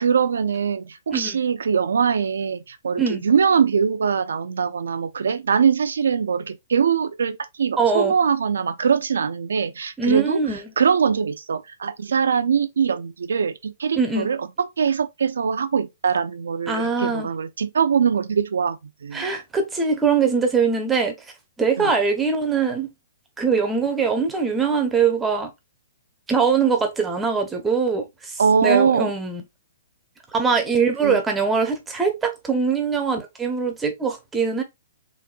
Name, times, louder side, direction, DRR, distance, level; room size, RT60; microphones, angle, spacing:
voice 1, 0.0-10.4 10.8-19.3 21.8-21.9 28.4-29.1 31.0-31.2, right 6 dB, 85° right, 0.5 m, -22 dB
voice 2, 7.8-8.1 10.0-10.6 14.0-14.3 16.7-17.3 19.1-21.1 21.6-22.9 23.4-25.5 26.3-29.4 30.3-34.6, right 5 dB, 10° right, 0.7 m, -22 dB
4.0 x 2.6 x 2.2 m
hypercardioid pair, 155°, 0 cm